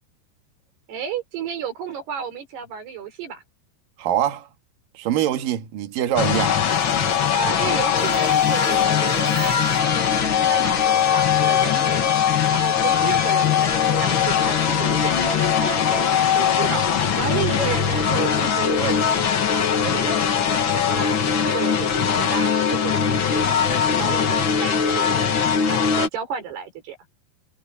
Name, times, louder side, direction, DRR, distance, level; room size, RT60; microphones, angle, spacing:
voice 1, 0.9-3.4 7.3-12.1 12.5-16.9 17.2-19.1 19.8-21.2 21.4-25.4 25.7-27.0, right 7 dB, 75° right, 7.1 m, -32 dB
voice 2, 4.0-4.5 4.9-6.6, right 11 dB, 60° right, 3.3 m, -23 dB
sound 1, 6.2-26.1, left 8 dB, 75° left, 1.1 m, -20 dB
sound 2, 6.6-14.9, left 5 dB, 45° left, 5.8 m, -39 dB
omnidirectional pair, 4.7 m